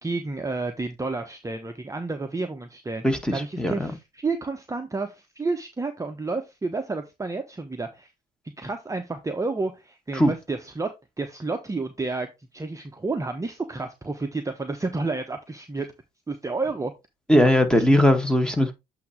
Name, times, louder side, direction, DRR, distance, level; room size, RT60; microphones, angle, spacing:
voice 1, 0.0-3.0 3.3-8.1 8.6-10.9 11.2-15.9 16.3-16.9 17.4-17.5, right 3 dB, 15° right, 1.0 m, -30 dB
voice 2, 3.0-3.9 10.1-10.3 17.3-18.7, left 1 dB, 5° left, 1.8 m, -20 dB
8.3 x 2.9 x 5.0 m
hypercardioid pair, 60°, 21 cm